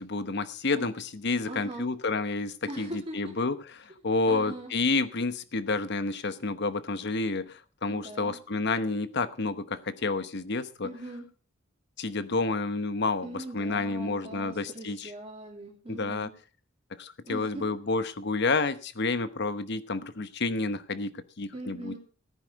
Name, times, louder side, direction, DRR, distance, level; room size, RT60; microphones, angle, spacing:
voice 1, 0.0-10.9 12.0-13.3 13.5-15.1 15.9-16.3 17.0-21.9, left 3 dB, 60° left, 13 dB, 1.0 m, -30 dB
voice 2, 1.5-1.9 2.7-3.3 4.3-4.7 7.9-8.4 10.8-11.2 13.2-16.3 17.3-17.7 21.5-22.0, right 1 dB, 30° right, 0 dB, 2.7 m, -41 dB
15.0 x 9.8 x 5.1 m, 0.38 s
head